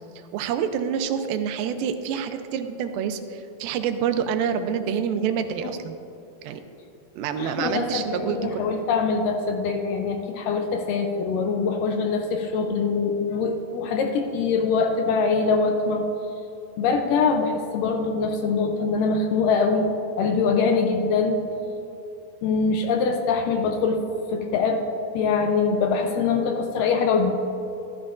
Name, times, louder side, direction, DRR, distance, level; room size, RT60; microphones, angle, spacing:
voice 1, 0.2-6.0 6.4-6.6 7.2-8.6, right 7 dB, 80° right, 7 dB, 2.3 m, -27 dB
voice 2, 7.4-16.1 16.8-21.4 22.4-24.0 24.3-24.8 25.1-27.3, left 4 dB, 80° left, 4 dB, 2.0 m, -23 dB
13.5 x 11.0 x 2.5 m, 2.9 s
omnidirectional pair, 4.3 m